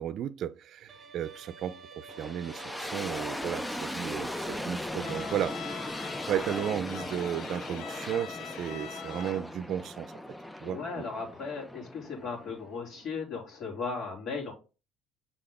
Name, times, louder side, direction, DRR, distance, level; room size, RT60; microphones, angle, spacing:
voice 1, 0.0-5.8 6.3-10.1 10.6-10.8, right 10 dB, 55° right, 0.5 m, -34 dB
Bowed string instrument, 0.9-5.9, right 3 dB, 30° right, 1.3 m, -50 dB
sound 1, 2.1-13.0, left 1 dB, 5° left, 0.5 m, -38 dB
Bowed string instrument 2, 5.0-9.6, left 11 dB, 65° left, 0.5 m, -43 dB
voice 2, 10.6-14.5, left 4 dB, 50° left, 3.1 m, -36 dB
6.8 x 4.2 x 3.7 m
supercardioid pair, 95°, 0 cm